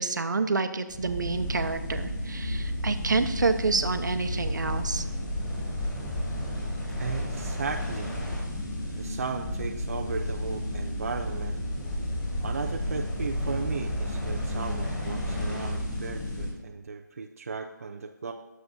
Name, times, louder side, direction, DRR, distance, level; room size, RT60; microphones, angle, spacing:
voice 1, 0.0-5.0, right 4 dB, 70° right, 8 dB, 1.0 m, -28 dB
sound 1, 0.9-16.5, left 1 dB, 15° left, 3.9 m, -32 dB
voice 2, 7.0-8.1 9.0-11.6 12.4-18.3, right 4 dB, 45° right, 4 dB, 0.6 m, -36 dB
20.5 x 7.7 x 2.7 m, 1.1 s
hypercardioid pair, 170°, 10 cm